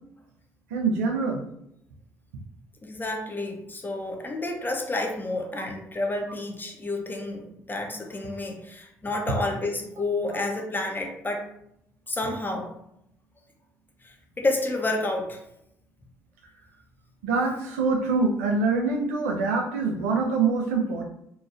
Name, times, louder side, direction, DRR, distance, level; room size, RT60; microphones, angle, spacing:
voice 1, 0.7-1.4 5.6-5.7 17.2-21.0, right 4 dB, 85° right, 2 dB, 0.4 m, -25 dB
voice 2, 2.8-11.5 12.1-12.7 14.0-15.4, left 2 dB, 25° left, 1 dB, 0.8 m, -30 dB
3.0 x 2.3 x 2.4 m, 0.77 s
hypercardioid pair, 50°, 8 cm